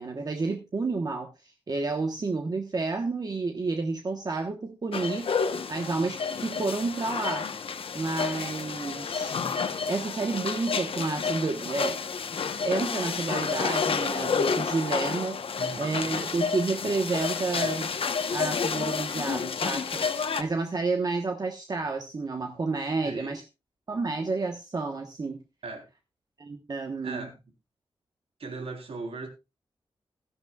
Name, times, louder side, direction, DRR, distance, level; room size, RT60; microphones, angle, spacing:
voice 1, 0.0-7.5 7.9-9.3 9.9-12.0 12.6-15.4 15.8-17.9 18.3-23.4 23.9-25.4 26.4-27.3, right 3 dB, 40° right, 1.2 m, -30 dB
sound 1, 4.9-20.4, left 5 dB, 70° left, 1.0 m, -30 dB
voice 2, 15.6-16.1 23.0-23.4 25.6-25.8 27.0-27.4 28.4-29.3, right 3 dB, 90° right, 3.5 m, -38 dB
17.0 x 12.5 x 2.4 m
wide cardioid pair, 135°, 10 cm